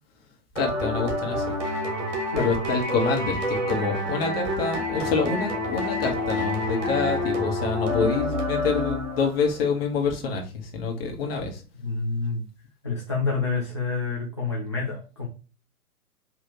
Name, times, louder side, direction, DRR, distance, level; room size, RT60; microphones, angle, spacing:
voice 1, 0.5-1.5 2.4-11.6, left 4 dB, 40° left, 1 dB, 1.3 m, -27 dB
sound 1, 0.6-9.5, left 1 dB, 50° right, 1.8 m, -28 dB
voice 2, 11.8-12.4 12.8-15.3, left 4 dB, 20° left, -6 dB, 0.4 m, -28 dB
5.3 x 2.8 x 2.9 m, 0.35 s
figure-of-eight pair, 120°, 46 cm